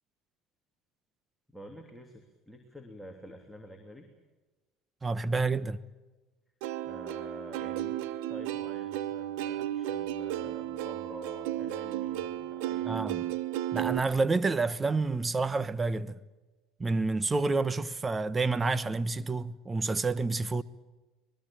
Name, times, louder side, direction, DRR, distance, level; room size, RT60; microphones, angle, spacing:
voice 1, 1.5-4.1 6.8-8.0 8.3-13.1, equal, ahead, 3.2 m, -48 dB
voice 2, 5.0-5.8 12.9-13.2 13.7-16.2 16.8-20.6, right 3 dB, 20° right, 1.0 m, -29 dB
Plucked string instrument, 6.6-14.0, right 13 dB, 75° right, 1.1 m, -34 dB
23.5 x 21.5 x 8.9 m
supercardioid pair, 95°, 0 cm